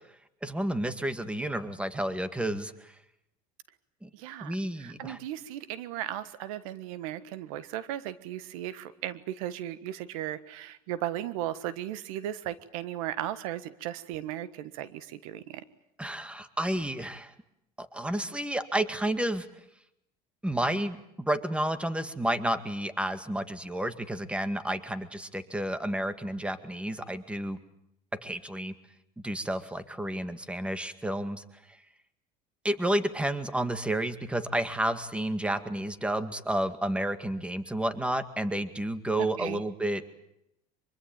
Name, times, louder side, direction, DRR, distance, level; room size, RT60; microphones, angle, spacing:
voice 1, 0.4-2.7 4.0-4.1 4.4-5.2 16.0-17.3 17.8-19.5 20.4-27.6 28.2-28.7 29.2-31.4 32.6-40.0, right 1 dB, 5° right, 11 dB, 2.1 m, -31 dB
voice 2, 4.1-15.6 39.2-39.6, right 12 dB, 90° right, 15 dB, 1.5 m, -36 dB
24.5 x 23.5 x 8.9 m, 0.80 s
supercardioid pair, 105°, 17 cm